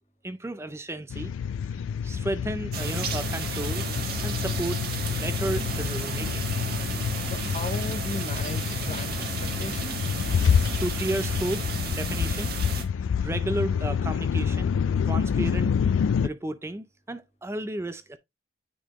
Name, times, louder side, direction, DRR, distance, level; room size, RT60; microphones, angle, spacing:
voice 1, 0.2-1.3 2.0-3.8 4.2-4.8 5.1-6.5 10.5-11.6 12.0-12.5 13.2-14.7 15.1-18.2, right 1 dB, 15° right, 0.4 m, -33 dB
sound 1, 1.1-16.3, left 7 dB, 90° left, 0.3 m, -28 dB
sound 2, 2.7-12.8, right 5 dB, 50° right, 1.4 m, -34 dB
voice 2, 7.3-10.1, left 2 dB, 35° left, 0.6 m, -37 dB
9.2 x 4.1 x 3.0 m
head